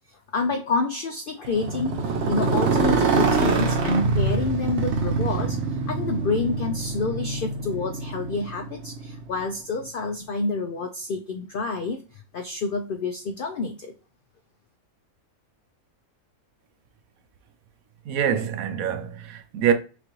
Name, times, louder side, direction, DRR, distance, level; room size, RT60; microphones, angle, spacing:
voice 1, 0.1-13.9, left 3 dB, 75° left, 0.5 m, -28 dB
Motorcycle, 1.4-9.5, right 4 dB, 55° right, 1.0 m, -25 dB
voice 2, 18.1-19.7, right 8 dB, 80° right, 1.1 m, -25 dB
6.0 x 2.5 x 3.0 m
omnidirectional pair, 1.5 m